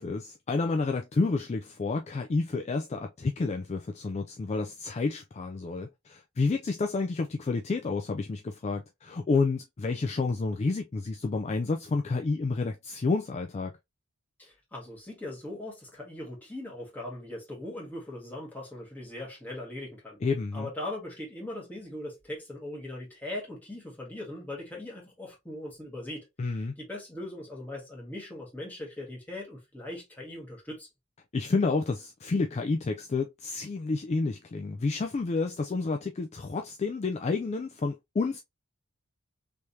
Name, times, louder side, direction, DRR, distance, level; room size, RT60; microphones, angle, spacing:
voice 1, 0.0-13.7 20.2-20.7 26.4-26.8 31.3-38.4, left 3 dB, 30° left, 0.3 m, -30 dB
voice 2, 14.4-20.2 20.5-30.9, left 1 dB, 10° left, 1.6 m, -40 dB
3.4 x 3.1 x 2.7 m
head